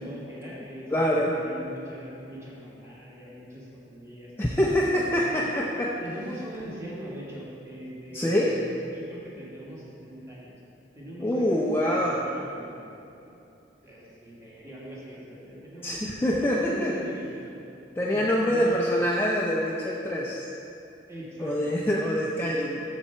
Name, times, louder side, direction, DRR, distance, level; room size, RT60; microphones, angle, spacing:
voice 1, 0.0-5.6 6.0-10.6 10.9-12.9 13.2-13.5 13.8-17.5 18.1-18.8 21.1-21.7, equal, 15° right, -6 dB, 1.6 m, -42 dB
voice 2, 0.9-1.4 4.4-5.9 8.1-8.6 11.2-12.2 15.8-16.9 18.0-20.4 21.4-22.8, equal, 15° left, -3 dB, 0.4 m, -25 dB
7.3 x 6.8 x 4.3 m, 2.8 s
head